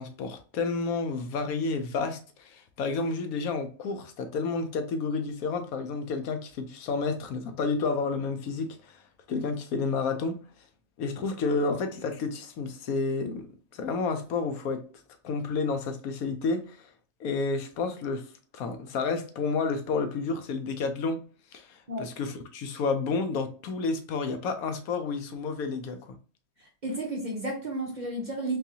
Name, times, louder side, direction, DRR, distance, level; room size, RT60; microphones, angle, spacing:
voice 1, 0.0-9.0 9.3-10.4 11.0-14.9 15.2-16.9 17.2-18.3 18.5-21.2 21.5-26.2, left 4 dB, 80° left, 1.1 m, -30 dB
voice 2, 26.8-28.6, right 1 dB, 45° right, 0.6 m, -32 dB
3.8 x 2.7 x 2.7 m
omnidirectional pair, 1.5 m